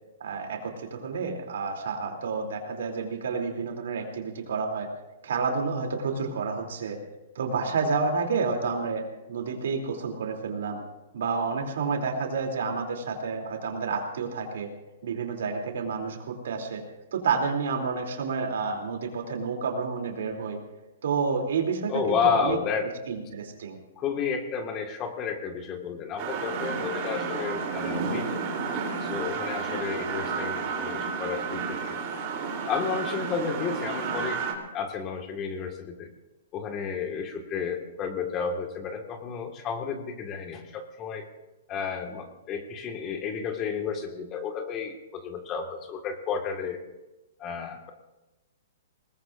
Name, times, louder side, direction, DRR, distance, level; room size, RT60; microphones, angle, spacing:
voice 1, 0.2-4.9 5.2-7.0 7.3-9.0 9.3-10.8 11.1-14.7 15.0-16.8 17.1-20.6 21.0-22.6 23.1-23.8, right 5 dB, 75° right, 2 dB, 3.1 m, -29 dB
voice 2, 21.9-22.9 24.0-28.4 29.0-32.0 32.6-34.4 34.7-36.1 36.5-41.3 41.7-46.8 47.4-47.9, left 6 dB, 30° left, 5 dB, 1.8 m, -31 dB
sound 1, 26.2-34.5, right 5 dB, 40° right, 3.4 m, -31 dB
21.5 x 19.0 x 2.6 m, 1.0 s
hypercardioid pair, 135°, 0 cm